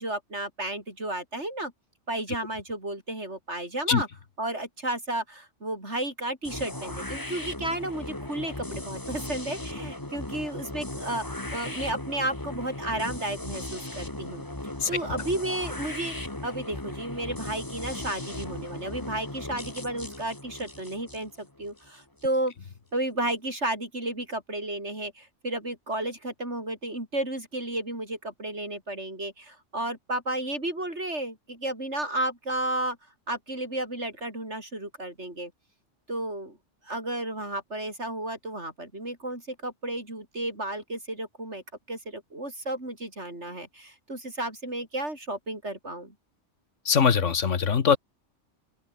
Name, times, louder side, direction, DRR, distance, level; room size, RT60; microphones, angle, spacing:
voice 1, 0.0-1.7 2.1-4.1 4.4-14.5 14.9-22.5 22.9-33.0 33.3-35.5 36.1-36.6 36.9-41.6 41.9-46.1, right 1 dB, 70° right, 7.9 m, -33 dB
sound 1, 6.4-22.3, left 1 dB, 15° left, 2.2 m, -37 dB
voice 2, 46.9-48.0, left 6 dB, 85° left, 1.8 m, -22 dB
omnidirectional pair, 1.2 m